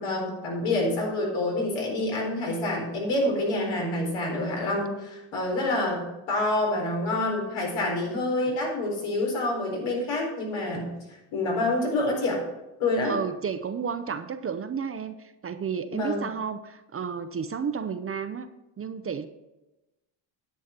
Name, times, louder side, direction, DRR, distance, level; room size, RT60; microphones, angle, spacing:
voice 1, 0.0-11.0 11.3-12.4 12.8-13.1 15.9-16.2, left 2 dB, 80° left, -1 dB, 4.3 m, -27 dB
voice 2, 13.0-18.5 18.8-19.3, right 6 dB, 30° right, 10 dB, 0.6 m, -32 dB
10.0 x 8.2 x 4.4 m, 0.99 s
cardioid pair, 110°, 48 cm